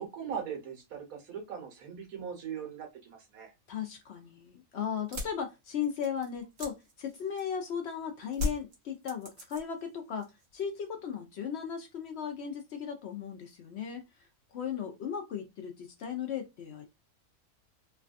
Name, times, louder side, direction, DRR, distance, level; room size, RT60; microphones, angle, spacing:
voice 1, 0.0-3.5, right 7 dB, 85° right, 1.4 m, -40 dB
voice 2, 3.7-10.3 10.5-14.0 14.5-16.8, left 7 dB, 65° left, 0.7 m, -36 dB
sound 1, 5.0-7.7 8.3-9.9 10.2-10.7, left 3 dB, 70° right, 1.4 m, -37 dB
3.2 x 2.2 x 2.5 m
omnidirectional pair, 1.5 m